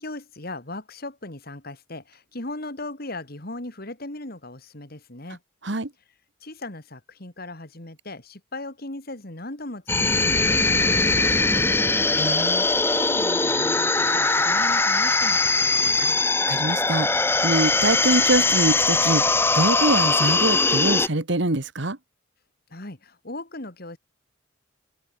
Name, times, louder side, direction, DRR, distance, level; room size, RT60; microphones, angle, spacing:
voice 1, 0.0-5.4 6.4-12.0 12.9-16.2 22.7-24.0, left 2 dB, 45° left, 2.7 m, -38 dB
sound 1, 9.9-21.1, left 3 dB, 10° left, 0.8 m, -21 dB
voice 2, 12.2-12.6 16.5-19.2 19.5-22.0, right 2 dB, 55° right, 1.7 m, -24 dB
head